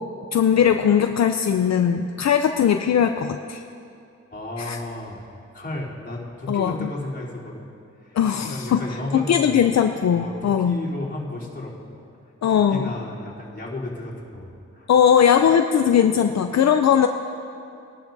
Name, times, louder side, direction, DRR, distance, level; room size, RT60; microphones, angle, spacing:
voice 1, 0.3-3.6 4.6-4.8 6.5-6.9 8.1-8.8 9.1-10.8 12.4-12.9 14.9-17.1, left 8 dB, 65° left, 6 dB, 0.5 m, -19 dB
voice 2, 4.3-5.2 5.5-7.7 8.0-9.6 10.1-11.9 12.7-14.9, left 2 dB, 35° left, -7 dB, 3.4 m, -33 dB
21.0 x 11.5 x 2.7 m, 2.5 s
wide cardioid pair, 80°, 29 cm